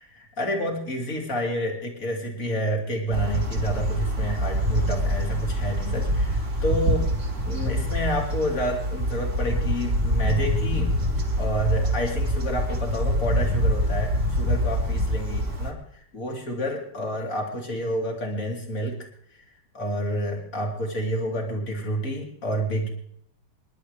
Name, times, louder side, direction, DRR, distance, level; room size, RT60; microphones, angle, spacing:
voice 1, 0.0-7.1 7.4-19.0 19.3-19.4 19.7-22.9, equal, 45° left, 0 dB, 3.6 m, -29 dB
sound 1, 3.1-15.7, equal, 55° right, 3.2 m, -25 dB
27.5 x 11.5 x 3.4 m, 0.69 s
omnidirectional pair, 2.0 m